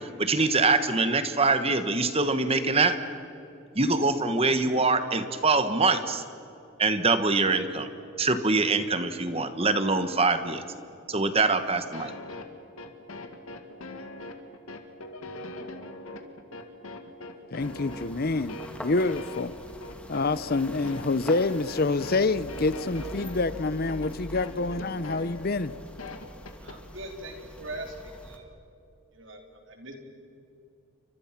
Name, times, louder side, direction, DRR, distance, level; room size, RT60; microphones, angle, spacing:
voice 1, 0.0-3.0 3.7-6.2 6.8-7.9 8.2-10.6 11.1-12.1, right 3 dB, 25° right, 1.4 m, -24 dB
sound 1, 11.9-26.8, left 1 dB, 75° left, 2.2 m, -41 dB
voice 2, 17.5-19.5 20.1-25.7, left 3 dB, 45° left, 0.7 m, -27 dB
sound 2, 17.6-28.4, equal, 5° left, 1.9 m, -44 dB
voice 3, 26.6-28.6 29.1-29.9, right 1 dB, 60° right, 3.8 m, -41 dB
29.5 x 25.0 x 6.0 m
head